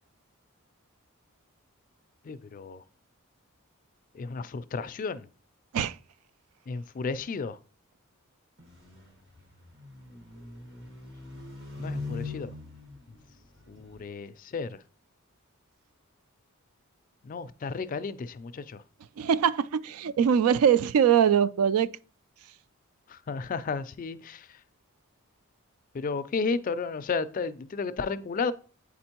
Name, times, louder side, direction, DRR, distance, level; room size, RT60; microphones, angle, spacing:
voice 1, 2.3-2.8 4.1-5.3 6.7-7.6 11.8-12.5 13.7-14.7 17.2-18.8 23.1-24.5 25.9-28.5, left 4 dB, 40° left, 0.3 m, -33 dB
sound 1, 8.6-14.1, left 3 dB, 55° right, 1.5 m, -41 dB
voice 2, 19.2-21.9, right 8 dB, 80° right, 0.3 m, -22 dB
8.4 x 4.3 x 2.9 m
head